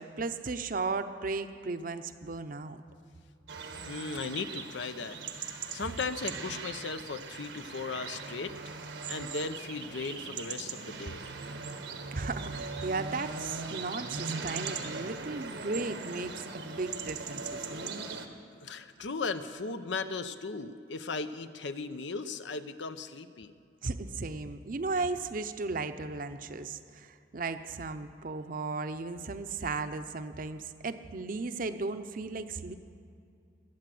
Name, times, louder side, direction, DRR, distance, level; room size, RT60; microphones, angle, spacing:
voice 1, 0.0-2.8 12.1-18.1 23.8-32.7, right 3 dB, 50° right, 9 dB, 0.7 m, -36 dB
sound 1, 3.5-18.3, right 4 dB, 85° right, 1.4 m, -40 dB
voice 2, 3.9-5.2 5.7-8.5 9.1-11.2 18.6-23.5, left 4 dB, 85° left, 10 dB, 0.7 m, -37 dB
21.0 x 8.9 x 7.7 m, 2.5 s
head